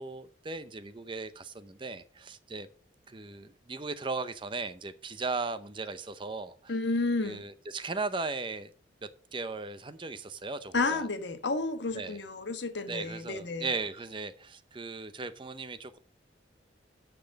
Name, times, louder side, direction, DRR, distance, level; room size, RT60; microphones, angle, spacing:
voice 1, 0.0-2.7 3.1-6.7 7.2-8.7 9.0-11.0 11.9-12.2 12.9-16.0, right 3 dB, 25° right, 0.6 m, -37 dB
voice 2, 6.7-7.4 10.7-13.7, left 3 dB, 75° left, 1.3 m, -31 dB
10.0 x 6.0 x 5.1 m
head